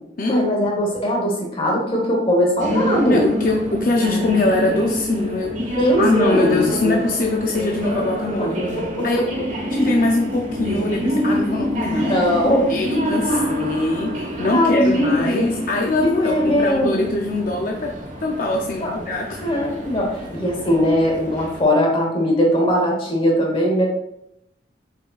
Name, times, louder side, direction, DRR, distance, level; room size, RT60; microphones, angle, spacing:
voice 1, 0.3-3.3 5.7-7.0 8.4-9.4 12.1-12.7 14.5-15.5 16.0-17.1 18.8-19.0 19.4-23.8, equal, 30° left, 0 dB, 1.3 m, -20 dB
sound 1, 2.6-21.6, equal, 45° right, 1.4 m, -26 dB
voice 2, 3.1-5.6 6.0-8.6 9.0-9.3 9.7-12.2 12.7-17.9 18.2-19.4, left 2 dB, 50° left, 1 dB, 0.6 m, -22 dB
7.6 x 5.4 x 2.4 m, 0.81 s
head